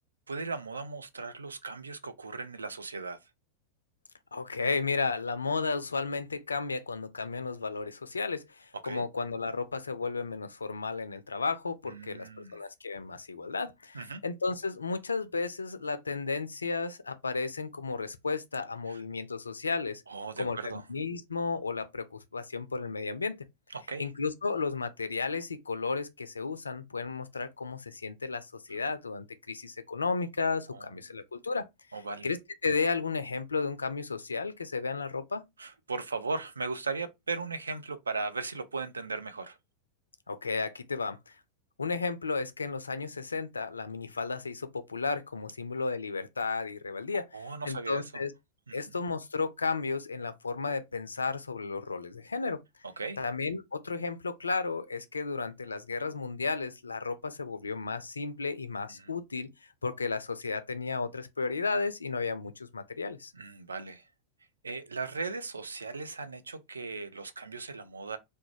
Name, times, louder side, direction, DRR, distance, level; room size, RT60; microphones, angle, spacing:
voice 1, 0.3-3.2 8.8-9.1 11.9-12.6 13.9-14.2 18.9-19.0 20.1-20.8 23.7-24.1 28.7-28.8 30.7-31.2 31.9-32.3 35.6-39.6 47.1-48.2 48.7-49.0 53.0-53.2 58.9-59.1 63.3-64.1 64.6-68.2, right 4 dB, 75° right, 0.3 m, -38 dB
voice 2, 4.3-20.0 20.4-23.4 24.0-31.7 32.2-32.4 32.6-35.4 40.3-41.3 41.8-47.2 47.7-48.3 48.7-52.6 53.2-59.5 59.8-63.3, left 4 dB, 75° left, 0.3 m, -33 dB
2.4 x 2.1 x 3.0 m
figure-of-eight pair, 90°, 0 cm